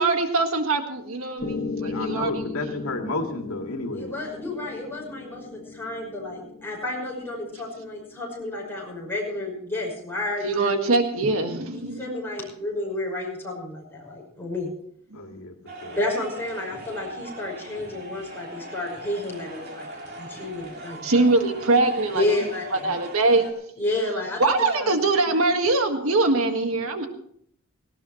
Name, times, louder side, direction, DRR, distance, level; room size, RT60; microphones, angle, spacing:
voice 1, 0.0-2.5 10.4-12.0 15.1-15.2 21.0-23.5 24.4-27.1, right 3 dB, 80° right, 6 dB, 1.7 m, -23 dB
Piano, 1.4-9.5, left 4 dB, 45° left, 2.1 m, -37 dB
voice 2, 1.8-4.1 15.1-15.5 15.8-16.0 22.8-23.0, left 2 dB, 90° left, 3 dB, 2.0 m, -32 dB
voice 3, 3.9-10.7 11.7-14.7 16.0-19.9 20.1-21.1 22.1-22.6 23.8-24.4 24.7-24.9, left 2 dB, 10° left, -2 dB, 5.9 m, -31 dB
sound 1, 15.7-23.5, right 1 dB, 50° right, 2.9 m, -40 dB
18.0 x 17.0 x 3.1 m, 0.66 s
head